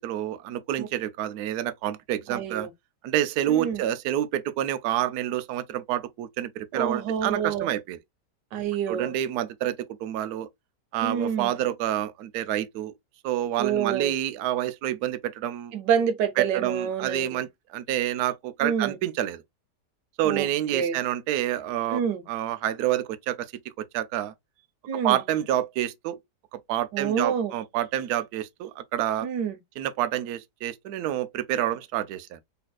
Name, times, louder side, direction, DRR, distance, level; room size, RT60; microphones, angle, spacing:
voice 1, 0.0-2.7 3.0-8.0 8.9-10.5 10.9-12.9 13.2-15.7 16.4-19.4 20.2-22.0 22.3-23.5 23.8-24.3 24.9-26.2 26.7-29.3 29.8-32.4, right 12 dB, 75° right, 1.1 m, -28 dB
voice 2, 2.3-2.7 3.5-3.8 6.7-7.7 8.5-9.2 11.0-11.5 13.6-14.1 15.7-17.4 18.6-19.0 20.2-20.5 20.7-21.0 21.9-22.2 24.9-25.2 26.9-27.5 29.2-29.6, right 7 dB, 90° right, 1.3 m, -27 dB
4.1 x 3.3 x 2.3 m
omnidirectional pair, 1.8 m